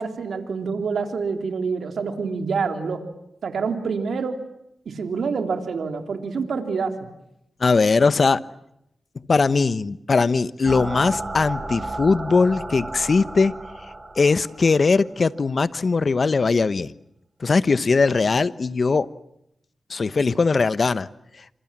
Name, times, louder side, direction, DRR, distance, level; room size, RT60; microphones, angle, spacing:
voice 1, 0.0-3.0 3.4-4.4 4.8-7.1, right 5 dB, 80° right, 6 dB, 3.4 m, -27 dB
voice 2, 7.6-8.4 9.1-13.5 14.2-16.9 17.4-19.1 19.9-21.1, left 4 dB, 50° left, 16 dB, 1.0 m, -20 dB
sound 1, 10.7-15.3, right 2 dB, 30° right, 3.1 m, -33 dB
27.5 x 27.0 x 7.5 m, 0.80 s
cardioid pair, 70°, 0 cm